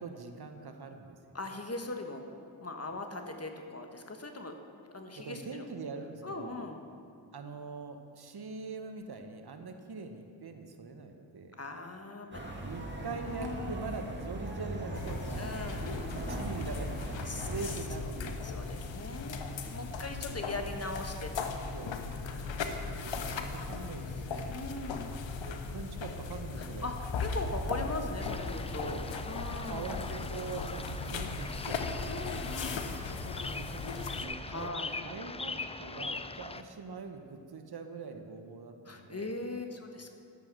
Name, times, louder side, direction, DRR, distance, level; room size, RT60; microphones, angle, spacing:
voice 1, 0.0-1.2 5.2-6.6 7.3-11.5 12.6-15.6 16.1-18.4 19.9-20.5 21.7-21.9 22.4-24.6 25.4-26.9 28.8-29.1 29.7-32.5 33.5-34.7 35.0-35.5 35.8-39.4, right 4 dB, 55° right, 6 dB, 1.1 m, -43 dB
voice 2, 1.3-2.2 2.6-4.6 4.9-5.6 6.2-6.8 11.6-12.5 13.2-13.7 15.4-16.0 17.3-17.5 18.4-21.5 22.2-23.7 24.1-24.2 24.5-25.1 26.6-29.8 32.1-33.7 34.5-35.0 38.8-40.1, left 2 dB, 35° left, 5 dB, 1.3 m, -40 dB
sound 1, 12.3-17.7, right 1 dB, 25° right, 2.3 m, -39 dB
sound 2, 14.9-34.2, left 4 dB, 80° left, 0.9 m, -38 dB
sound 3, 28.2-36.6, left 3 dB, 15° left, 0.4 m, -41 dB
11.0 x 7.1 x 6.2 m, 2.4 s
cardioid pair, 40°, 45 cm